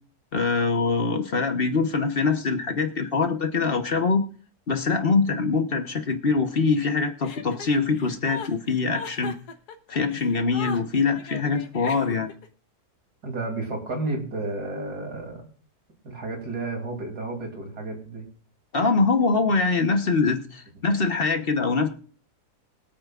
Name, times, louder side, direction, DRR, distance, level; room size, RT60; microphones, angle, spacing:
voice 1, 0.3-4.2 4.7-9.3 9.9-12.3 18.7-21.9, left 4 dB, 40° left, 7 dB, 1.1 m, -23 dB
Chuckle chortle, 7.2-12.5, left 6 dB, 85° left, 1.6 m, -38 dB
voice 2, 13.2-15.5 16.0-18.3, right 2 dB, 80° right, 2 dB, 3.5 m, -32 dB
24.0 x 8.7 x 2.4 m, 0.43 s
omnidirectional pair, 1.7 m